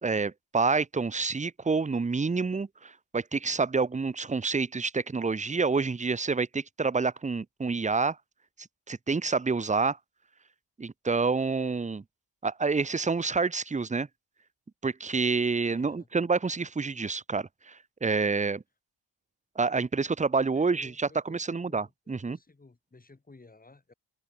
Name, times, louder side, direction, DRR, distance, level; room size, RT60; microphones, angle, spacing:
voice 1, 0.0-8.2 8.9-10.0 10.8-12.0 12.4-14.1 14.8-18.6 19.6-22.4, right 4 dB, 15° right, 0.8 m, -28 dB
voice 2, 15.7-16.1 20.5-23.9, left 3 dB, 20° left, 7.5 m, -55 dB
open air
wide cardioid pair, 155°, 44 cm